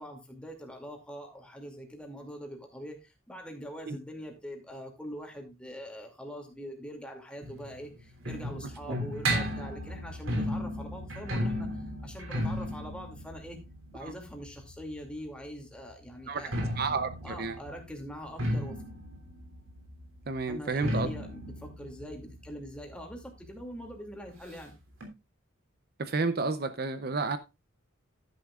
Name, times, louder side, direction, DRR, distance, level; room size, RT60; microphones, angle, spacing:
voice 1, 0.0-13.6 13.9-16.8 17.2-18.8 20.5-24.7, equal, 5° left, 2.5 m, -43 dB
sound 1, 7.4-15.1 16.2-23.6 23.9-24.0 24.2-24.3 25.0-25.1, equal, 75° right, 3.1 m, -34 dB
voice 2, 16.3-17.6 20.3-21.1 26.0-27.4, right 4 dB, 50° right, 0.6 m, -31 dB
11.5 x 10.5 x 2.4 m
head